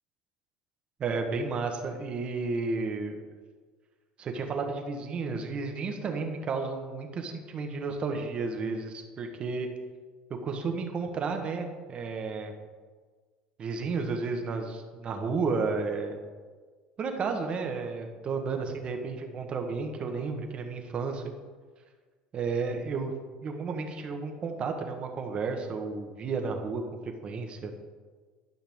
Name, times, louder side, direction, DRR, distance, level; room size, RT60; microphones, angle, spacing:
voice 1, 1.0-3.2 4.2-9.7 10.4-12.5 13.6-16.2 17.0-21.2 22.3-23.1 23.4-27.7, right 4 dB, 35° right, 4 dB, 1.2 m, -32 dB
12.0 x 5.8 x 3.6 m, 1.5 s
supercardioid pair, 120°, 3 cm